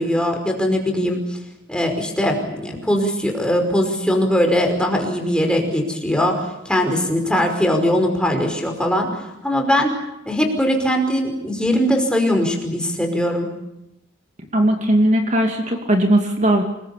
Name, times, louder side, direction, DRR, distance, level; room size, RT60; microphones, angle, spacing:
voice 1, 0.0-1.4 1.7-9.1 9.4-9.9 10.3-13.5, equal, 5° left, 2 dB, 5.2 m, -20 dB
voice 2, 14.5-16.6, right 1 dB, 40° right, 3 dB, 2.7 m, -18 dB
27.5 x 21.5 x 8.6 m, 0.87 s
head